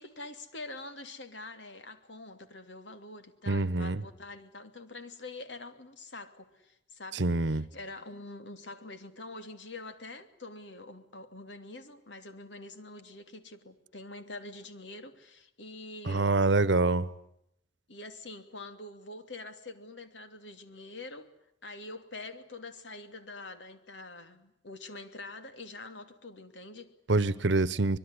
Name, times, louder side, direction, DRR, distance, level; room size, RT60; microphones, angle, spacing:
voice 1, 0.0-16.4 17.9-21.3 21.6-26.9, left 2 dB, 85° left, 2.8 m, -45 dB
voice 2, 3.5-4.0 7.1-7.6 16.1-17.1 27.1-28.0, right 3 dB, 85° right, 1.1 m, -26 dB
25.0 x 22.0 x 9.8 m
head